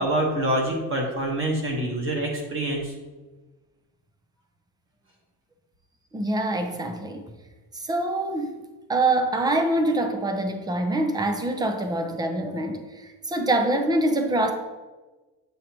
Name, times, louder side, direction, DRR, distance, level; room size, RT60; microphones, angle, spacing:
voice 1, 0.0-2.9, right 1 dB, 35° right, 0 dB, 1.3 m, -26 dB
voice 2, 6.1-7.2 7.9-8.6 8.9-12.8 13.3-14.5, right 2 dB, 10° right, 6 dB, 0.5 m, -24 dB
7.9 x 4.8 x 2.9 m, 1.2 s
cardioid pair, 135°, 37 cm